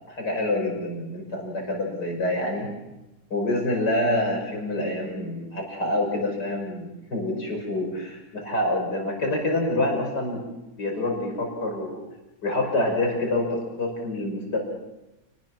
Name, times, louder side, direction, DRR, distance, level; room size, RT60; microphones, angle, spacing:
voice 1, 0.0-2.7 3.3-10.4 10.8-12.0 12.4-14.6, left 1 dB, 60° left, 1 dB, 6.4 m, -27 dB
29.0 x 20.5 x 6.1 m, 0.96 s
omnidirectional pair, 2.0 m